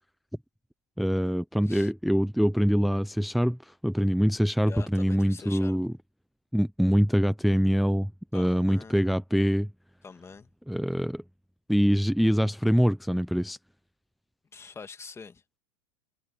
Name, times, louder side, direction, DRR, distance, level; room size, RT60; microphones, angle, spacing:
voice 1, 1.0-5.9 6.5-9.7 10.7-11.2 11.7-13.6, equal, ahead, 0.7 m, -24 dB
voice 2, 4.7-5.8 8.3-9.0 10.0-10.5 14.5-15.4, left 5 dB, 15° left, 1.9 m, -44 dB
hypercardioid pair, 115°, 16 cm